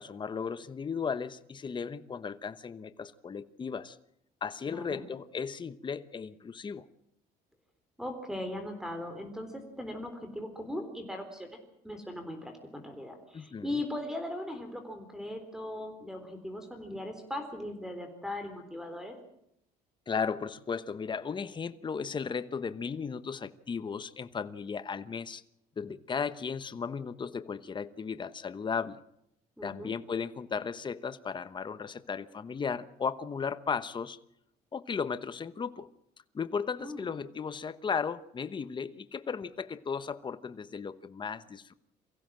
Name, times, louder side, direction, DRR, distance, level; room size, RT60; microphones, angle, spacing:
voice 1, 0.0-4.0 4.4-6.8 13.3-13.8 20.1-25.4 25.8-29.0 29.6-34.2 34.7-35.9 36.3-41.7, left 6 dB, 25° left, 1.0 m, -35 dB
voice 2, 4.7-5.0 8.0-11.6 11.8-19.1 29.6-29.9 36.8-37.1, left 1 dB, 5° right, 3.9 m, -39 dB
23.5 x 15.5 x 7.6 m
cardioid pair, 110°, 17 cm